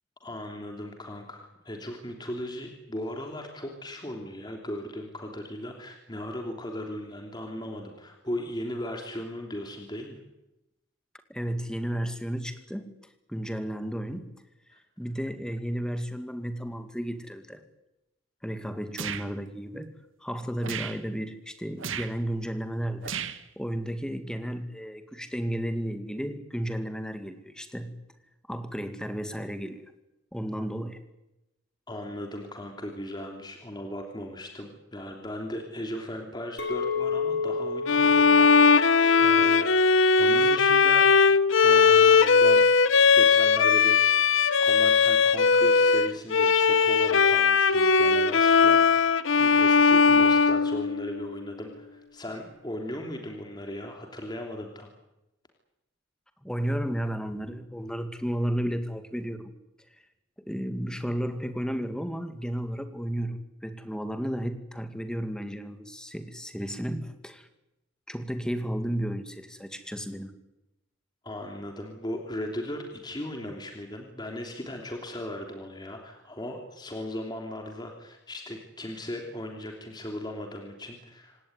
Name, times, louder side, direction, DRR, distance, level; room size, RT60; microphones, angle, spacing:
voice 1, 0.2-10.2 14.7-14.8 31.9-38.8 39.2-41.2 41.6-42.6 43.1-54.9 71.2-81.4, left 1 dB, 20° left, 2 dB, 3.1 m, -37 dB
voice 2, 11.3-12.9 13.3-14.3 15.0-17.6 18.4-19.9 20.2-23.2 23.6-28.0 28.5-29.9 30.3-31.0 56.4-59.5 60.5-67.5 68.1-70.3, equal, 5° left, 8 dB, 2.1 m, -33 dB
sound 1, 19.0-19.3 20.6-21.0 21.8-22.1 23.0-23.4, right 7 dB, 80° right, 1.7 m, -34 dB
Chink clink, 36.6-40.9 41.3-41.7, left 5 dB, 60° left, 4.5 m, -32 dB
Bowed string instrument, 37.9-51.3, left 5 dB, 80° left, 0.9 m, -19 dB
26.5 x 17.5 x 9.9 m, 0.94 s
head